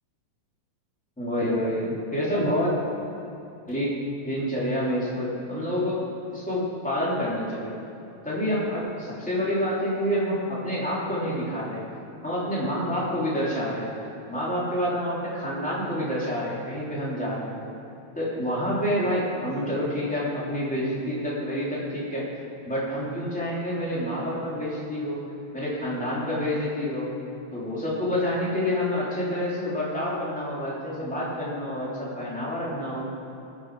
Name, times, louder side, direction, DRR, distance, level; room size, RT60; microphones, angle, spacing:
voice 1, 1.2-2.7 3.7-3.9 4.2-6.1 6.3-7.8 8.2-11.8 12.2-13.9 14.3-17.6 18.1-22.3 22.6-25.3 25.5-27.1 27.5-33.0, equal, 5° left, -7 dB, 2.8 m, -28 dB
19.5 x 7.2 x 4.8 m, 2.9 s
omnidirectional pair, 3.3 m